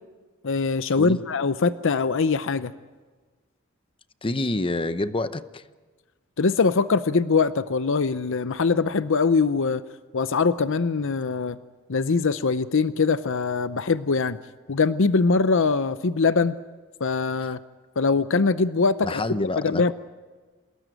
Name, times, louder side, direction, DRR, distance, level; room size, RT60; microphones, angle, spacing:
voice 1, 0.4-2.7 6.4-9.8 10.1-11.6 11.9-14.4 14.7-16.6 17.0-17.6 18.0-19.2 19.6-19.9, left 4 dB, 65° left, 13 dB, 0.7 m, -22 dB
voice 2, 4.2-5.6 19.0-19.9, left 2 dB, 25° left, 12 dB, 0.8 m, -27 dB
28.0 x 18.0 x 9.1 m, 1.4 s
head